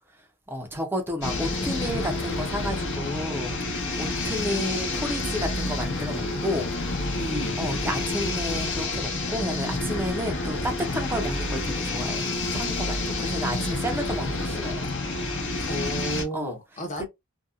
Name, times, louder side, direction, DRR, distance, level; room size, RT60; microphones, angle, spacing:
voice 1, 0.5-6.7 7.6-14.9 16.3-16.5 17.0-17.1, equal, 10° right, 0.5 m, -31 dB
sound 1, 1.2-16.2, left 2 dB, 55° left, 1.0 m, -29 dB
voice 2, 7.1-7.6 15.6-17.0, right 1 dB, 35° left, 0.8 m, -32 dB
2.7 x 2.2 x 2.4 m
head